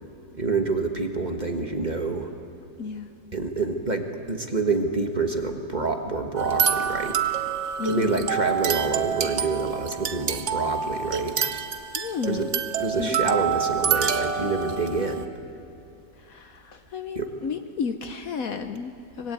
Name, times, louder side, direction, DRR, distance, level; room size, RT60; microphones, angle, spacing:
voice 1, 0.3-2.3 3.3-7.2 7.9-11.4 12.3-12.5 12.8-15.3 17.1-17.3, right 3 dB, 25° right, 4 dB, 1.5 m, -27 dB
voice 2, 2.8-3.1 7.8-8.4 11.9-12.6 13.0-13.1 16.2-19.3, left 6 dB, 60° left, 8 dB, 1.2 m, -32 dB
sound 1, 6.4-15.2, right 7 dB, 50° right, 1.1 m, -27 dB
24.5 x 21.5 x 9.1 m, 2.7 s
omnidirectional pair, 1.9 m